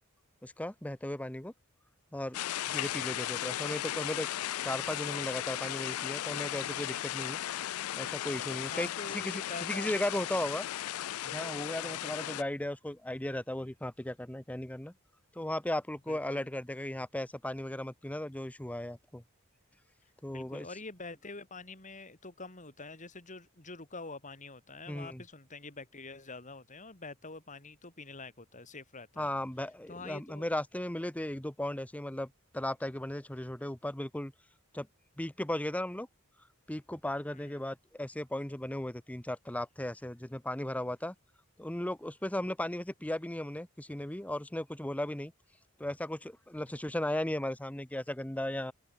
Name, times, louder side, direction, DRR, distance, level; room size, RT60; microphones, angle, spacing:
voice 1, 0.4-1.5 2.1-2.4 2.7-4.3 4.6-7.4 8.0-8.9 9.1-10.6 11.2-14.9 15.3-19.2 20.2-20.7 24.9-25.2 29.2-34.3 34.7-34.9 35.2-36.1 36.7-41.1 41.6-45.3 45.8-48.7, left 1 dB, 5° left, 0.7 m, -36 dB
sound 1, 2.3-12.4, left 13 dB, 85° left, 0.4 m, -36 dB
voice 2, 8.7-10.2 11.8-12.2 16.1-16.5 20.0-29.3 29.9-30.5 37.3-37.6, left 3 dB, 35° left, 4.6 m, -46 dB
open air
head